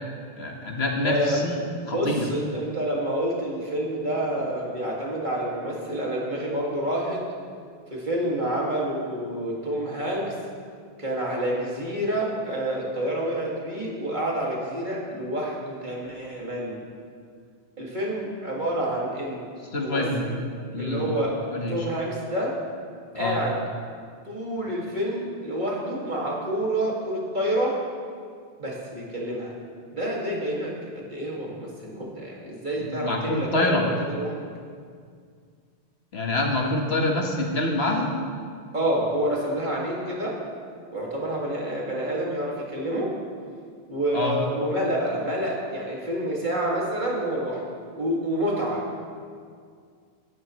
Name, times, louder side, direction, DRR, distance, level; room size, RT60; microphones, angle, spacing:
voice 1, 0.4-1.6 1.9-2.2 19.7-20.3 20.7-21.1 21.5-21.8 23.2-23.4 32.8-33.9 36.1-38.1 44.1-44.4, left 2 dB, 90° left, 0 dB, 1.8 m, -26 dB
voice 2, 1.0-1.4 1.9-7.2 7.9-10.3 11.0-16.8 17.8-19.5 19.8-20.4 20.8-21.4 21.7-22.6 23.1-23.6 24.2-27.8 28.6-29.5 29.9-34.5 38.7-40.4 40.9-43.1 43.9-49.0, right 1 dB, 50° right, -4 dB, 2.5 m, -28 dB
17.0 x 12.0 x 3.2 m, 2.1 s
omnidirectional pair, 1.0 m